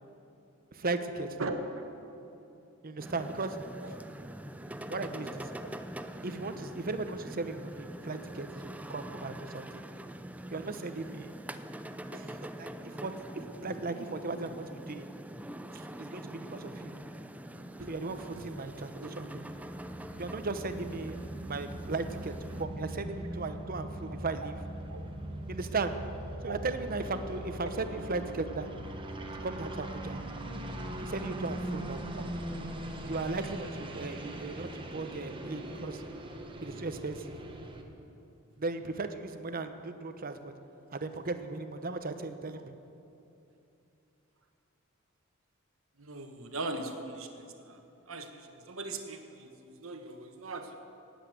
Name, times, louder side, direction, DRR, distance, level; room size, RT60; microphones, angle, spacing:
voice 1, 0.7-1.5 2.8-3.6 4.9-5.5 6.2-9.8 10.5-11.3 12.1-15.1 15.7-16.9 17.9-19.4 20.2-21.2 21.5-24.6 25.5-25.9 26.4-28.7 29.4-30.2 31.0-32.0 33.0-36.0 36.6-37.4 38.6-40.5 40.9-42.7, right 3 dB, 45° right, 9 dB, 0.9 m, -37 dB
voice 2, 1.4-1.9 5.6-5.7 17.6-17.9 18.3-18.5 19.0-19.1 24.9-25.0 26.4-26.6 32.1-32.2 46.0-47.8 48.1-49.5 49.8-50.8, right 2 dB, 70° right, 5 dB, 1.4 m, -39 dB
sound 1, 3.0-22.6, right 1 dB, 5° right, 0.5 m, -44 dB
sound 2, 19.0-37.8, right 1 dB, 25° right, 1.3 m, -41 dB
18.5 x 8.2 x 8.1 m, 2.9 s
head